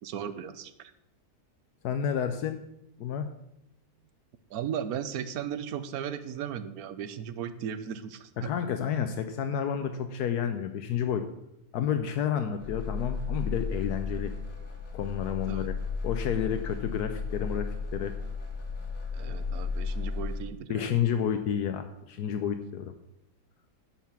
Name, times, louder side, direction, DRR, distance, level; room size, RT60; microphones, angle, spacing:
voice 1, 0.0-0.9 4.5-8.5 15.5-15.7 19.1-21.0, right 8 dB, 70° right, 12 dB, 1.2 m, -36 dB
voice 2, 1.8-2.6 3.0-3.3 8.4-11.3 11.7-14.3 14.9-15.7 16.0-18.1 20.7-22.9, left 8 dB, 80° left, 8 dB, 1.2 m, -30 dB
sound 1, 12.6-20.4, left 4 dB, 60° left, 2.2 m, -34 dB
10.5 x 5.9 x 7.1 m, 0.83 s
omnidirectional pair, 1.7 m